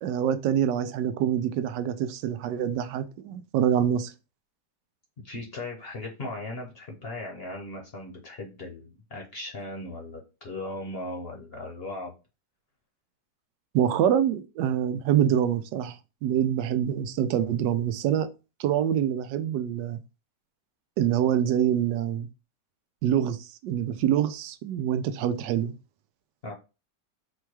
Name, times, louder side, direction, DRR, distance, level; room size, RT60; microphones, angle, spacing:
voice 1, 0.0-4.1 13.7-18.3 18.6-20.0 21.0-22.3 23.0-25.7, right 10 dB, 85° right, 1.2 m, -25 dB
voice 2, 5.2-12.1 26.4-26.5, left 2 dB, 45° left, 0.9 m, -38 dB
4.4 x 2.3 x 4.6 m
omnidirectional pair, 1.8 m